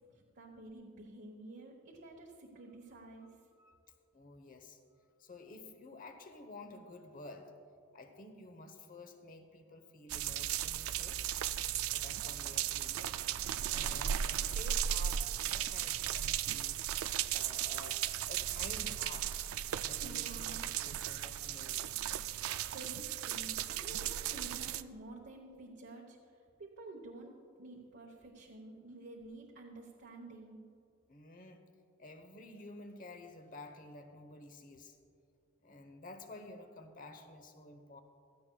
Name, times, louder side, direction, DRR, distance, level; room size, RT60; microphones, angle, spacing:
voice 1, 0.1-3.3 20.0-20.7 22.4-30.6, right 2 dB, 55° right, -2 dB, 1.1 m, -51 dB
voice 2, 3.6-4.8 5.2-7.5 7.9-11.3 11.9-13.2 13.7-16.8 17.3-19.4 19.8-22.1 31.1-31.6 32.0-35.0 35.6-38.0, left 2 dB, 40° left, 7 dB, 1.0 m, -52 dB
sound 1, 10.1-24.8, right 11 dB, 85° right, 0.4 m, -36 dB
16.0 x 13.5 x 2.3 m, 2.5 s
head